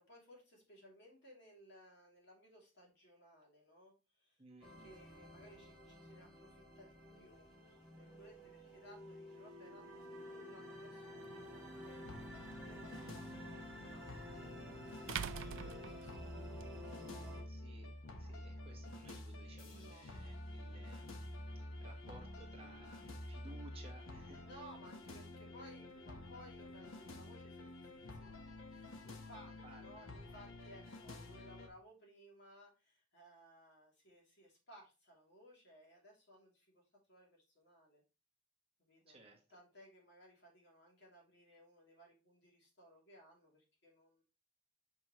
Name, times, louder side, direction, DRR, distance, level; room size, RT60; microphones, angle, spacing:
voice 1, 0.0-16.8 19.7-20.1 24.4-38.0 38.8-39.2 39.5-44.2, equal, 55° left, -2 dB, 2.8 m, -61 dB
voice 2, 4.4-5.0 12.9-13.2 17.5-21.1 21.5-24.4 29.6-29.9 39.1-39.4, right 2 dB, 30° right, 0 dB, 1.3 m, -59 dB
sound 1, 4.6-17.4, equal, 5° right, 2.3 m, -52 dB
sound 2, 11.2-11.3 13.9-14.0 15.1-16.7, right 8 dB, 70° right, 0.4 m, -43 dB
sound 3, 11.9-31.7, left 1 dB, 85° left, 1.0 m, -50 dB
6.4 x 5.3 x 3.0 m, 0.29 s
head